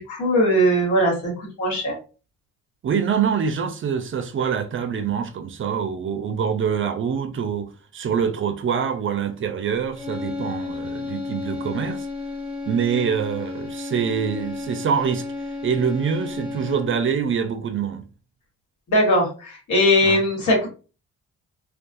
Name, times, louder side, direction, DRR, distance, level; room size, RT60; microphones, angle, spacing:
voice 1, 0.0-2.0 18.9-20.7, equal, 70° left, 1.4 m, -20 dB
voice 2, 2.8-12.1 12.7-15.3 15.6-18.0 20.0-20.2, right 7 dB, 45° right, 0.5 m, -25 dB
sound 1, 9.9-17.1, left 3 dB, 15° left, 0.9 m, -32 dB
2.3 x 2.3 x 2.5 m
cardioid pair, 90°, 30 cm